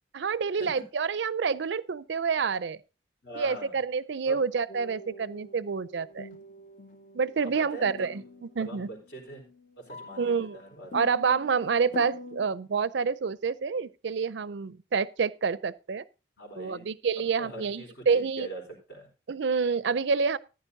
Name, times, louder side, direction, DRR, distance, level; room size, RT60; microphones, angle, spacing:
voice 1, 0.1-2.8 3.4-6.3 7.1-8.2 8.6-8.9 10.2-10.6 10.9-16.0 16.6-18.5 19.3-20.4, right 5 dB, 70° right, 0.5 m, -28 dB
voice 2, 3.2-3.8 4.2-4.4 7.4-8.2 8.6-9.5 9.8-10.9 16.4-16.9 17.4-18.6 18.9-19.1, right 2 dB, 60° left, 4.4 m, -43 dB
sound 1, 4.7-12.5, left 2 dB, 40° left, 0.7 m, -45 dB
14.5 x 10.5 x 2.7 m
head